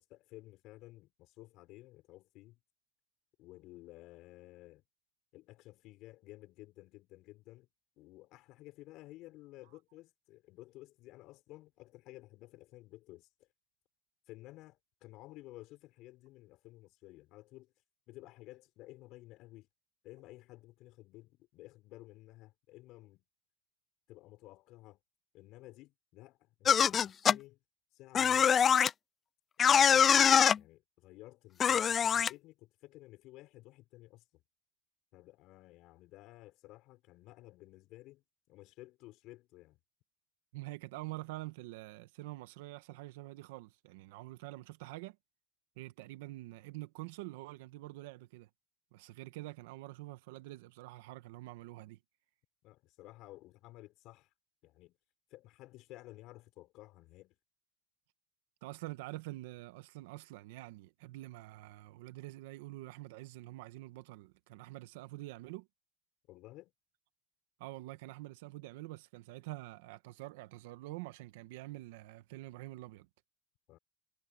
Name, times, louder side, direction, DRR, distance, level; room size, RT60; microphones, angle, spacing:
voice 1, 0.0-2.6 3.4-4.8 5.3-7.7 8.0-13.3 14.3-17.7 18.1-19.7 20.0-23.2 24.1-25.0 25.3-27.6 27.9-28.7 29.7-34.4 35.1-39.8 52.6-54.3 54.6-55.0 55.3-57.4 66.3-66.7 73.7-73.8, left 18 dB, 60° left, 6.5 m, -54 dB
sound 1, 26.7-27.4 28.1-28.9 29.6-30.6 31.6-32.3, left 7 dB, 35° left, 0.4 m, -24 dB
voice 2, 40.5-45.2 45.8-48.5 48.9-52.0 58.6-65.7 67.6-73.1, right 19 dB, 85° right, 1.5 m, -46 dB
supercardioid pair, 110°, 0 cm